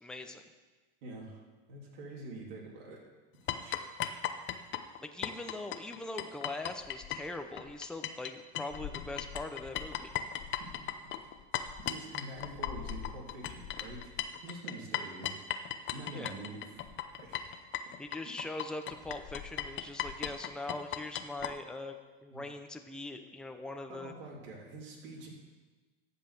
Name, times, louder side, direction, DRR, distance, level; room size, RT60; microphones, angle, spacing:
voice 1, 0.0-0.4 5.0-10.1 16.1-16.4 18.0-24.1, left 2 dB, 5° left, 5 dB, 0.8 m, -42 dB
voice 2, 1.0-1.4 1.7-3.0 3.4-4.0 10.6-10.9 11.8-14.1 14.4-15.3 15.9-16.8 17.2-17.5 18.2-18.3 22.3-22.5 23.9-25.3, right 2 dB, 70° right, -3 dB, 3.2 m, -46 dB
sound 1, 3.5-8.3 8.5-21.5, left 11 dB, 40° left, 0.8 m, -37 dB
14.0 x 5.6 x 6.7 m, 1.3 s
supercardioid pair, 115°, 30 cm